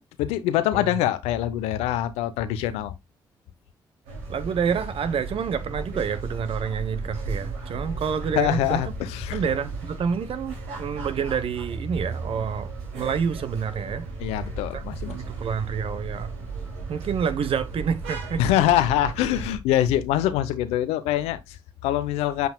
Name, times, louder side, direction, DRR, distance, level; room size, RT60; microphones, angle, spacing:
voice 1, 0.0-2.9 8.3-9.4 14.2-15.2 18.4-22.5, left 12 dB, 85° left, 0.7 m, -24 dB
sound 1, 4.1-19.6, right 3 dB, 85° right, 2.6 m, -35 dB
voice 2, 4.3-8.8 9.3-14.1 14.7-16.3 16.9-18.4, right 6 dB, 60° right, 1.0 m, -28 dB
7.7 x 5.5 x 2.3 m
hypercardioid pair, 50°, 11 cm